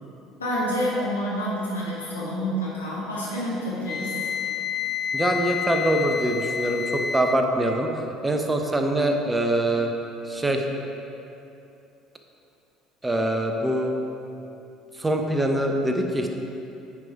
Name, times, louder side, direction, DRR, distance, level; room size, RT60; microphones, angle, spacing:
voice 1, 0.4-4.1, equal, 85° left, -7 dB, 1.9 m, -28 dB
Wind instrument woodwind instrument, 3.9-7.4, left 7 dB, 35° left, 0.3 m, -29 dB
voice 2, 5.1-9.9 10.3-10.6 13.0-13.9 15.0-16.3, right 1 dB, 15° right, 3 dB, 1.0 m, -24 dB
9.7 x 5.1 x 4.6 m, 2.8 s
figure-of-eight pair, 60°, 0 cm